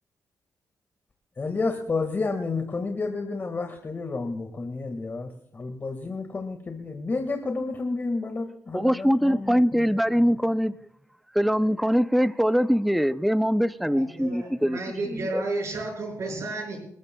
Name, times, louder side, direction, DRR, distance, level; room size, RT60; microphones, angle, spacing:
voice 1, 1.4-9.9 10.3-10.4, left 3 dB, 35° left, 1.7 m, -31 dB
voice 2, 8.7-10.7 11.3-14.8 15.1-15.4, equal, ahead, 0.4 m, -22 dB
voice 3, 13.8-16.8, right 2 dB, 50° right, 6.0 m, -32 dB
28.0 x 13.5 x 2.2 m
cardioid pair, 110°, 6 cm